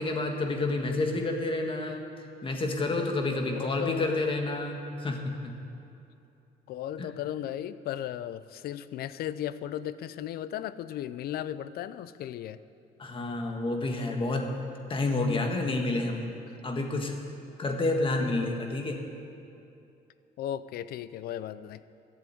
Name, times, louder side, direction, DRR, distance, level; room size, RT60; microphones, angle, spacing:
voice 1, 0.0-2.0 2.4-5.5 7.0-7.1 13.0-14.5 14.9-16.3 16.6-17.2 17.6-19.0, left 2 dB, 30° left, 3 dB, 1.6 m, -29 dB
voice 2, 3.6-4.1 6.7-12.6 20.4-21.8, left 11 dB, 65° left, 15 dB, 0.5 m, -36 dB
12.0 x 7.4 x 9.2 m, 2.7 s
cardioid pair, 110°, 17 cm